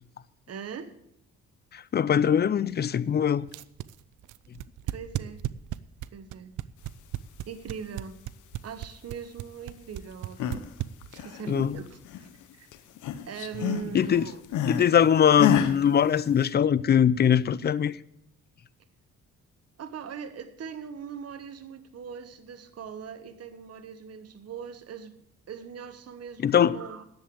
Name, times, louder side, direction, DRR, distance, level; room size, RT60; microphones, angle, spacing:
voice 1, 0.5-0.9 4.8-5.4 6.1-6.5 7.5-8.2 8.6-10.6 11.2-12.7 13.2-14.4 19.8-25.2 25.5-27.0, right 7 dB, 55° right, 1.2 m, -40 dB
voice 2, 1.7-3.5 11.5-11.7 13.9-14.3 14.7-17.9 26.4-26.8, left 8 dB, 35° left, 0.5 m, -22 dB
sound 1, 3.5-11.4, right 15 dB, 80° right, 0.6 m, -34 dB
sound 2, 10.1-10.7 11.0-12.4 12.7-14.9 15.4-15.8, left 8 dB, 80° left, 1.1 m, -30 dB
10.5 x 7.9 x 8.5 m
cardioid pair, 90°, 30 cm